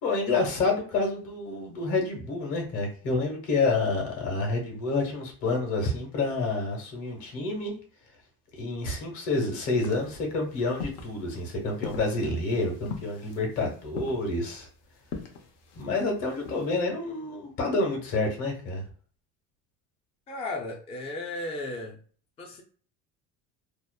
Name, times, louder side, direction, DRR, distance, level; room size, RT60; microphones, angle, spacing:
voice 1, 0.0-7.7 8.6-14.7 15.7-18.8, left 3 dB, 65° left, 1 dB, 1.2 m, -28 dB
sound 1, 9.7-16.8, left 5 dB, 85° left, 0.7 m, -42 dB
voice 2, 20.3-22.0 22.4-22.6, left 2 dB, 20° left, 1 dB, 0.4 m, -35 dB
2.8 x 2.0 x 2.2 m, 0.43 s
cardioid pair, 120°, 32 cm